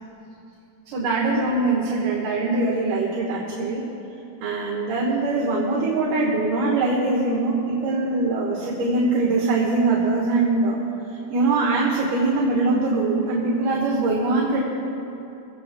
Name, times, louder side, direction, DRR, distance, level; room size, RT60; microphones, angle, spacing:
voice 1, 0.9-3.8 4.4-10.8 11.3-14.6, right 3 dB, 85° right, -4 dB, 3.0 m, -22 dB
23.5 x 17.5 x 2.2 m, 2.8 s
omnidirectional pair, 3.6 m